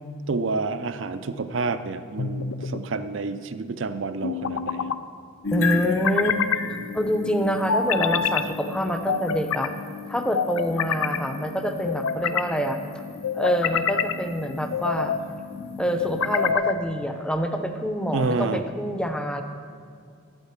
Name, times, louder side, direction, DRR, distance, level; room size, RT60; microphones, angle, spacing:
voice 1, 0.3-4.9 18.1-18.6, right 3 dB, 60° right, 11 dB, 0.5 m, -29 dB
sound 1, 2.2-2.8 4.2-5.0 5.8-6.6 7.7-8.5 9.1-9.7 10.3-11.2 11.8-12.5 13.2-14.2 14.7-15.2 16.0-16.8, left 6 dB, 90° left, 0.6 m, -26 dB
sound 2, 5.4-16.5, left 6 dB, 70° left, 0.9 m, -35 dB
voice 2, 5.5-6.4 6.7-9.8 10.1-12.8 13.3-15.2 15.8-19.4, equal, 5° left, 6 dB, 0.6 m, -26 dB
11.5 x 9.0 x 5.9 m, 2.3 s
head